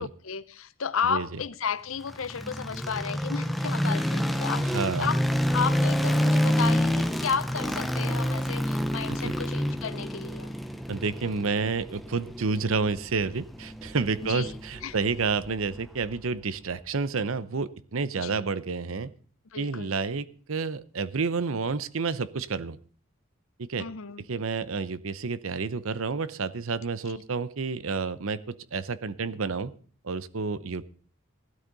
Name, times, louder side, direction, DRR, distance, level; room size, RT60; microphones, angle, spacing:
voice 1, 0.0-4.7 5.0-5.2 5.5-10.5 14.3-14.9 18.2-18.4 19.5-19.9 23.8-24.2, left 6 dB, 70° left, 0.7 m, -33 dB
voice 2, 1.1-1.4 4.6-5.1 9.2-9.3 10.9-19.1 19.6-22.8 23.6-23.9 24.3-29.7 30.0-30.8, right 4 dB, 70° right, 0.7 m, -30 dB
sound 1, 2.0-16.1, equal, ahead, 0.7 m, -28 dB
16.0 x 12.5 x 4.0 m
head